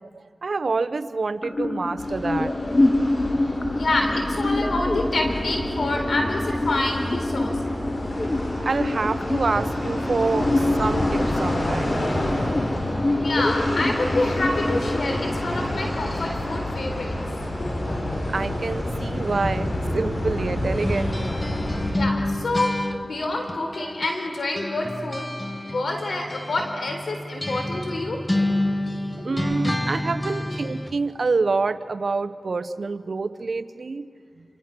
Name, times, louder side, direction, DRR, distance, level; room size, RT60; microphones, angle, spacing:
voice 1, 0.0-2.5 8.6-12.0 18.3-21.2 29.2-34.1, right 4 dB, 70° right, 12 dB, 0.8 m, -27 dB
sound 1, 1.4-17.4, left 2 dB, 40° left, 1.9 m, -26 dB
sound 2, 2.0-21.9, left 1 dB, 65° left, 6.4 m, -29 dB
voice 2, 3.8-7.5 13.2-17.2 17.7-18.0 18.5-18.6 19.8-20.0 21.9-22.7 23.0-25.3 25.6-28.2 28.6-28.8 29.2-29.4 30.4-30.6, left 2 dB, 85° left, 3 dB, 4.0 m, -27 dB
sound 3, 20.8-24.3 24.6-31.0, left 1 dB, 20° left, 1.6 m, -29 dB
27.5 x 25.5 x 6.0 m, 2.4 s
cardioid pair, 45°, 0 cm